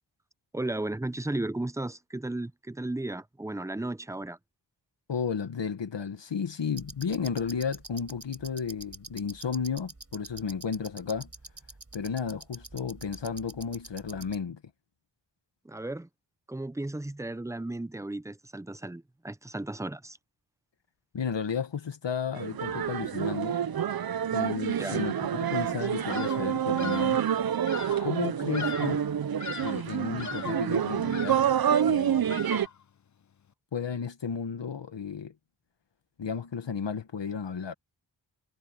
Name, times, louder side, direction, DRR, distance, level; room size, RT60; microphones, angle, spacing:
voice 1, 0.5-4.4 15.6-16.1 16.5-20.2 24.8-25.1, right 2 dB, 5° right, 0.5 m, -34 dB
voice 2, 5.1-11.3 11.9-14.6 21.1-23.6 24.3-27.2 28.0-29.0 29.6-31.4 31.9-32.5 33.7-35.3 36.2-37.7, left 6 dB, 75° left, 1.5 m, -33 dB
sound 1, 6.7-14.4, right 3 dB, 35° right, 5.0 m, -47 dB
sound 2, 22.4-32.7, right 9 dB, 55° right, 0.6 m, -28 dB
Bird vocalization bird call bird song, 26.1-26.5 26.8-27.2 27.7-28.1 28.5-29.1 29.4-29.9 30.2-30.7 31.1-31.6 32.3-32.8, left 7 dB, 40° left, 0.5 m, -39 dB
wide cardioid pair, 85°, 44 cm